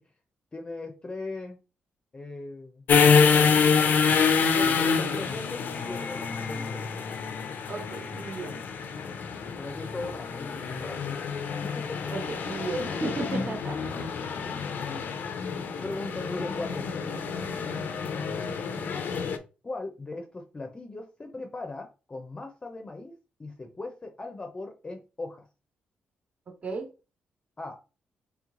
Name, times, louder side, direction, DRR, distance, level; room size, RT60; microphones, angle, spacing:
voice 1, 0.5-1.6 2.1-2.8 4.6-7.0 8.9-9.1 9.6-11.3 11.6-12.1 14.8-15.2 15.8-17.0 17.9-18.4 19.6-23.1 23.4-25.5 27.6-27.8, left 2 dB, 25° left, 0.7 m, -39 dB
sound 1, 2.9-19.4, left 5 dB, 65° left, 0.6 m, -27 dB
voice 2, 4.5-5.2 7.7-8.6 12.1-13.8 26.6-26.9, right 3 dB, 45° right, 1.3 m, -34 dB
3.3 x 3.1 x 3.7 m
cardioid pair, 95°, 3 cm